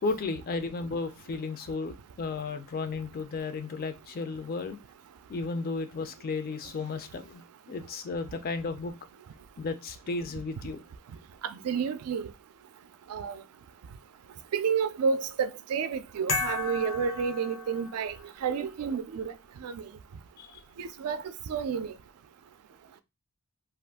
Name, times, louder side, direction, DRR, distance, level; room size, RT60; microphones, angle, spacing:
voice 1, 0.0-4.8 5.3-8.9 9.6-10.8 20.4-20.6, left 3 dB, 40° left, 0.4 m, -34 dB
voice 2, 11.4-12.3 13.1-13.4 14.5-18.2 18.4-19.3 19.6-19.8 20.8-21.9, right 6 dB, 80° right, 0.4 m, -30 dB
sound 1, 16.3-18.2, left 4 dB, 85° left, 0.8 m, -33 dB
2.5 x 2.4 x 3.4 m
head